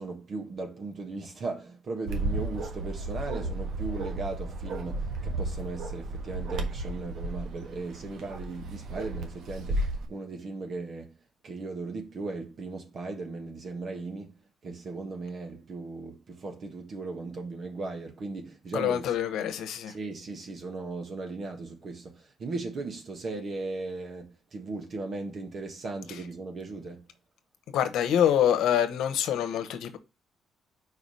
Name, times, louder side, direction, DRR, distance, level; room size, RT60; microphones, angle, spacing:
voice 1, 0.0-11.1 11.4-14.3 14.6-19.1 19.9-27.1, right 3 dB, 50° right, 1.4 m, -37 dB
Bark, 2.1-10.1, right 2 dB, 75° right, 1.4 m, -33 dB
voice 2, 18.7-19.9 27.7-30.0, left 10 dB, 85° left, 1.0 m, -25 dB
4.8 x 4.8 x 5.5 m
cardioid pair, 90°, 0 cm